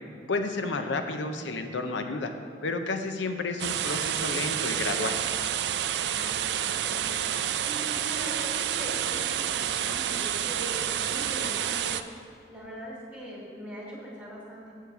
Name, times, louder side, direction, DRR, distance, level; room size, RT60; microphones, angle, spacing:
voice 1, 0.3-2.3 2.6-5.2, left 3 dB, 85° left, 7 dB, 0.7 m, -31 dB
sound 1, 3.6-12.0, right 10 dB, 70° right, 0.3 m, -29 dB
voice 2, 5.9-11.9 12.5-14.7, equal, 10° right, -5 dB, 1.6 m, -42 dB
7.4 x 7.0 x 4.7 m, 2.5 s
head